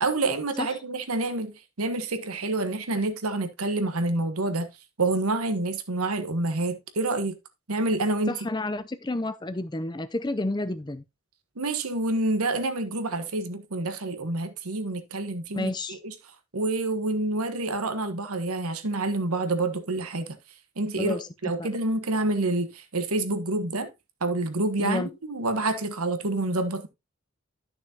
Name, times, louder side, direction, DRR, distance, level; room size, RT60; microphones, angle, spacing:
voice 1, 0.0-4.7 5.0-7.4 7.7-8.4 11.6-16.1 16.5-20.4 20.8-21.2 21.4-23.9 24.2-26.9, right 2 dB, 90° right, 1.3 m, -28 dB
voice 2, 8.3-11.0 15.5-16.0 21.0-21.7 24.8-25.1, left 2 dB, 20° left, 0.5 m, -30 dB
11.5 x 6.4 x 2.8 m
head